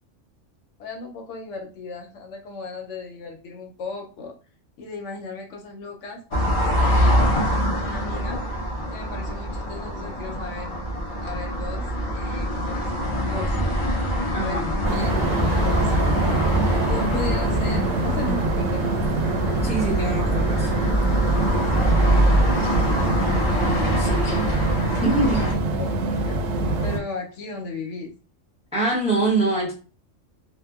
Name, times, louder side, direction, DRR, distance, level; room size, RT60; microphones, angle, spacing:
voice 1, 0.8-4.3 4.8-6.2 6.6-8.4 8.9-10.8 11.2-13.5 14.4-16.0 16.9-19.0 22.1-23.2 25.8-25.9 26.3-26.4 26.8-28.2, left 3 dB, 70° left, 2 dB, 0.9 m, -36 dB
sound 1, 6.3-25.5, equal, 55° left, 0.3 m, -24 dB
voice 2, 14.3-14.7 19.6-20.7 23.6-24.5 25.0-25.5 28.7-29.7, right 2 dB, 5° right, -3 dB, 0.6 m, -24 dB
sound 2, 14.8-27.0, right 2 dB, 80° right, 1.0 m, -25 dB
2.7 x 2.1 x 2.3 m, 0.35 s
omnidirectional pair, 1.3 m